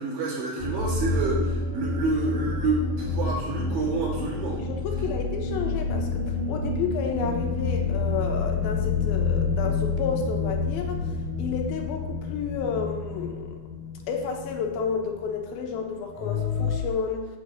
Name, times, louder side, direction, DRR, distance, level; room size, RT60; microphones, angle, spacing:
voice 1, 0.0-4.6, right 3 dB, 75° right, -5 dB, 4.0 m, -28 dB
sound 1, 0.6-15.3 15.6-15.7 16.1-16.8, left 4 dB, 10° left, 1.8 m, -29 dB
voice 2, 4.5-11.1 11.4-13.6 14.1-17.3, left 6 dB, 90° left, 3 dB, 2.9 m, -31 dB
7.9 x 4.8 x 6.8 m, 1.3 s
omnidirectional pair, 4.2 m